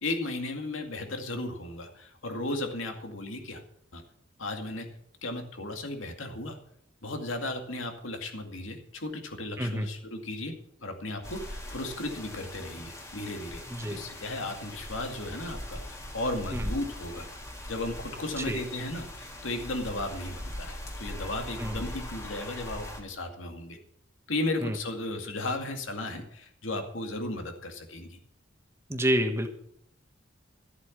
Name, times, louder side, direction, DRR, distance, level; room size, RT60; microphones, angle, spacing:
voice 1, 0.0-3.6 3.9-4.0 4.4-4.9 5.2-6.6 7.0-13.6 13.9-17.3 17.7-23.8 24.3-28.2, left 2 dB, 85° left, 4 dB, 2.2 m, -35 dB
voice 2, 9.6-9.9 13.7-14.0 16.5-16.6 18.5-18.6 21.6-21.8 24.6-24.7 28.9-29.5, equal, 15° right, 5 dB, 1.4 m, -28 dB
sound 1, 11.2-23.0, left 1 dB, 15° left, 1.9 m, -40 dB
13.5 x 8.2 x 7.4 m, 0.71 s
head